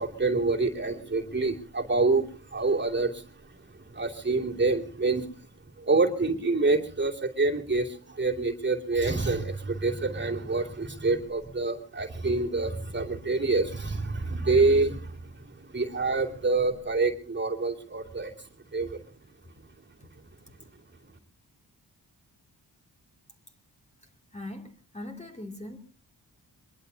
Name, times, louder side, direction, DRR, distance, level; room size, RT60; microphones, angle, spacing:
voice 1, 0.0-3.3 3.9-5.3 5.8-19.0, right 3 dB, 30° right, -1 dB, 2.5 m, -27 dB
voice 2, 24.3-25.8, left 1 dB, 15° left, 2 dB, 2.7 m, -40 dB
23.5 x 21.5 x 2.8 m, 0.39 s
wide cardioid pair, 100°, 40 cm